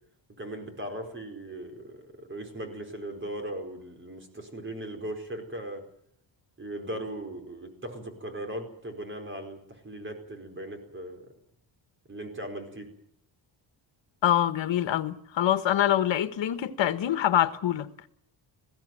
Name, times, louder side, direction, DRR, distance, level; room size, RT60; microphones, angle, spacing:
voice 1, 0.4-5.9 6.6-11.3 12.1-12.9, right 1 dB, 25° right, 4.8 m, -38 dB
voice 2, 14.2-17.9, left 11 dB, 75° left, 1.5 m, -25 dB
21.0 x 16.5 x 9.3 m
wide cardioid pair, 160°, 45 cm